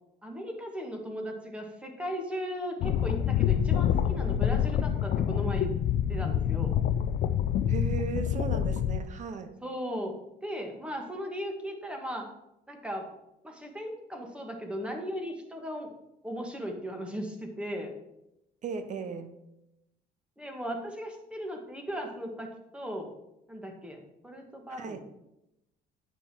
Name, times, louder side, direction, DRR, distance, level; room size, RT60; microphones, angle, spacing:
voice 1, 0.2-5.7 6.1-6.8 9.6-12.3 12.7-13.1 13.4-15.9 16.2-17.9 20.4-23.1 23.5-25.0, equal, 5° right, 3 dB, 1.6 m, -37 dB
sound 1, 2.8-9.0, left 9 dB, 60° left, 0.5 m, -27 dB
voice 2, 7.7-9.6 18.6-19.3 24.8-25.0, right 5 dB, 45° right, 10 dB, 0.9 m, -36 dB
9.6 x 5.3 x 4.4 m, 0.86 s
cardioid pair, 110°, 17 cm